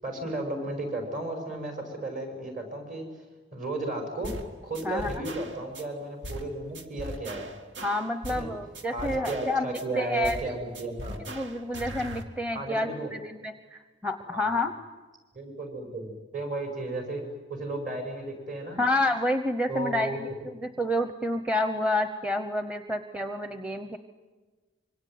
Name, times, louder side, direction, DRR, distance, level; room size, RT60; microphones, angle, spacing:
voice 1, 0.0-3.2 3.5-4.3 4.6-7.5 8.3-8.5 8.9-11.2 12.5-13.1 14.2-14.6 15.3-17.2 17.5-18.8 19.7-20.2, right 2 dB, 45° right, 5 dB, 6.6 m, -34 dB
sound 1, 4.2-4.5 4.7-5.8 6.2-6.5 6.7-8.5 8.7-9.8 10.2-10.5 10.7-12.2, equal, 75° right, 2.2 m, -39 dB
voice 2, 7.8-10.4 11.3-14.7 18.8-24.0, left 1 dB, 5° right, 8 dB, 0.9 m, -29 dB
25.5 x 24.5 x 9.4 m, 1.3 s
head